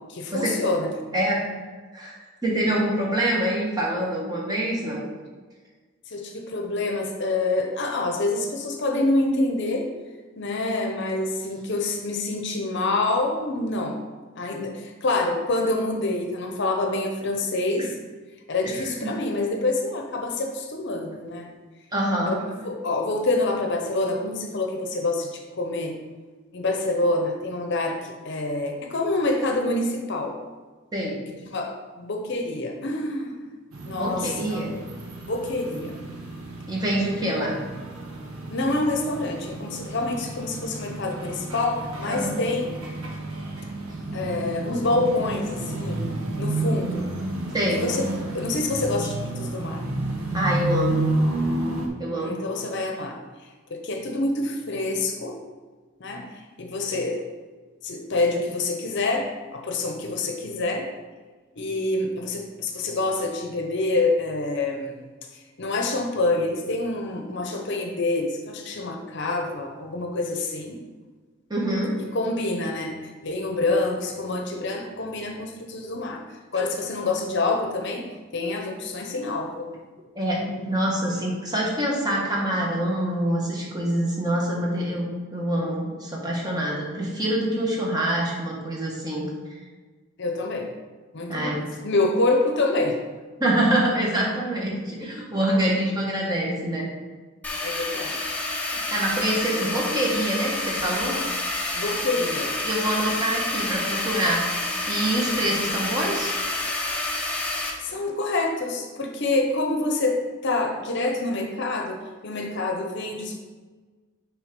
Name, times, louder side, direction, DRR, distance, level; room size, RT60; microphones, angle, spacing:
voice 1, 0.1-0.9 6.1-9.8 10.4-14.0 14.4-17.9 18.5-21.5 22.3-22.4 22.6-26.0 26.5-30.4 31.5-33.4 33.9-34.6 35.3-35.9 38.5-42.7 44.1-46.0 46.4-47.0 47.7-48.1 48.3-49.8 52.1-53.2 53.7-55.4 56.0-57.2 57.8-60.9 61.6-65.1 65.3-70.8 72.1-76.2 76.5-78.1 78.3-79.7 90.2-90.7 91.1-93.0 97.6-98.4 101.7-102.6 107.8-112.0 112.2-113.4, left 2 dB, 55° left, 3 dB, 0.7 m, -26 dB
voice 2, 1.1-1.4 1.9-2.2 2.4-5.0 17.8-17.9 18.6-19.1 21.9-22.4 30.9-31.2 33.9-34.7 36.7-37.6 42.1-42.4 47.5-47.9 50.3-51.1 52.0-52.4 71.5-71.9 80.1-89.3 91.3-91.6 93.4-96.9 98.9-101.2 102.6-104.5 104.9-106.3, right 1 dB, 20° right, -3 dB, 1.2 m, -25 dB
sound 1, 33.7-51.9, right 2 dB, 85° right, 1.0 m, -31 dB
sound 2, 97.4-107.7, left 2 dB, 5° left, 0.7 m, -28 dB
6.3 x 3.4 x 5.2 m, 1.4 s
head